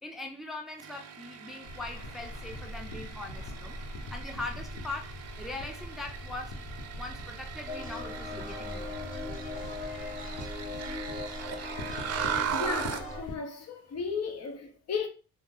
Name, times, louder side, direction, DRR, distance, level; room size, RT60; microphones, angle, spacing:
voice 1, 0.0-3.8 4.1-6.6 7.0-9.0, left 2 dB, ahead, 0.4 m, -41 dB
sound 1, 0.8-13.1, right 9 dB, 55° right, 0.4 m, -39 dB
sound 2, 1.6-13.4, left 1 dB, 85° left, 0.8 m, -42 dB
sound 3, 7.7-13.2, left 3 dB, 25° left, 1.3 m, -39 dB
voice 2, 12.3-15.1, left 5 dB, 55° left, 0.8 m, -35 dB
2.7 x 2.0 x 3.6 m
cardioid pair, 90°, 30 cm